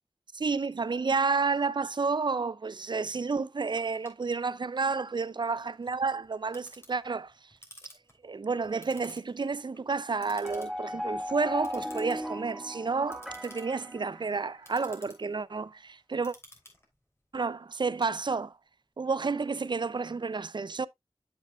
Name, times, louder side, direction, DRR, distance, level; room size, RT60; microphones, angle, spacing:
voice 1, 0.3-7.3 8.2-16.3 17.3-18.5 19.0-20.9, right 4 dB, 50° right, 0.4 m, -30 dB
Clock, 3.8-18.7, left 1 dB, 25° left, 3.1 m, -56 dB
sound 1, 10.4-14.8, left 1 dB, 5° right, 1.4 m, -37 dB
8.4 x 7.3 x 2.2 m
wide cardioid pair, 60°, 10 cm